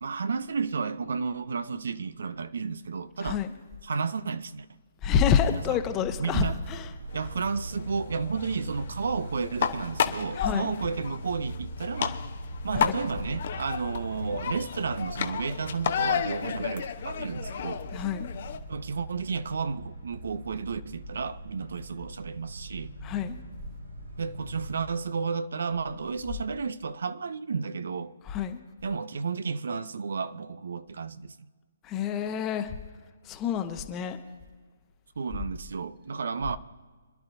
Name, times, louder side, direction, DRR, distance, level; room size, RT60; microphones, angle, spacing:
voice 1, 0.0-3.4 3.8-4.7 5.5-5.8 6.2-6.6 7.1-12.2 12.6-17.8 18.7-22.9 24.2-28.1 28.8-31.5 35.2-36.6, right 5 dB, 65° right, 0.6 m, -32 dB
voice 2, 5.0-6.9 10.4-10.7 12.7-13.0 17.9-18.3 23.0-23.4 28.2-28.6 31.8-32.8 33.2-34.2, left 7 dB, 20° left, 1.0 m, -28 dB
sound 1, 5.7-24.8, right 1 dB, 85° right, 4.2 m, -41 dB
sound 2, 7.1-18.6, left 8 dB, 50° left, 0.9 m, -33 dB
26.0 x 11.0 x 2.7 m
figure-of-eight pair, 140°, 0 cm